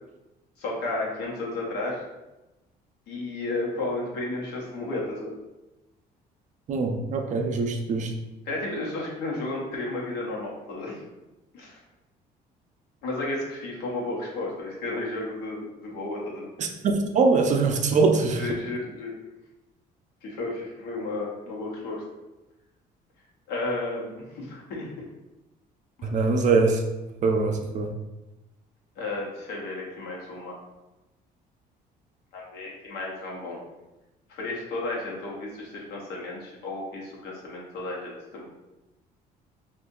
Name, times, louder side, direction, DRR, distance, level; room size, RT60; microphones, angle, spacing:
voice 1, 0.6-2.0 3.1-5.4 8.4-11.0 11.5-11.8 13.0-16.5 18.4-19.1 20.2-22.0 23.5-25.1 26.0-26.2 29.0-30.5 32.3-33.6 34.3-38.5, left 2 dB, 80° left, -3 dB, 1.0 m, -33 dB
voice 2, 6.7-8.1 16.6-18.4 26.0-26.8 27.2-27.9, right 4 dB, 45° right, 4 dB, 0.5 m, -23 dB
2.7 x 2.5 x 3.7 m, 1.0 s
cardioid pair, 110°, 17 cm